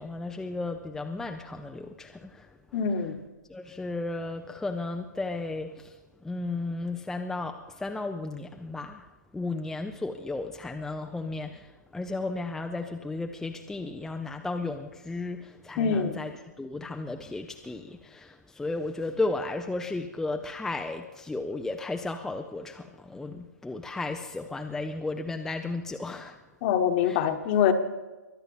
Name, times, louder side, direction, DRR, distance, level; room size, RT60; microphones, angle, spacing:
voice 1, 0.0-2.5 2.7-2.8 3.5-6.0 6.2-9.1 9.3-26.4 27.0-27.2, left 3 dB, 5° left, 0.5 m, -34 dB
voice 2, 2.7-3.1 15.8-16.1 26.6-27.7, left 8 dB, 35° left, 1.3 m, -24 dB
23.0 x 9.1 x 5.5 m
figure-of-eight pair, 130°, 10 cm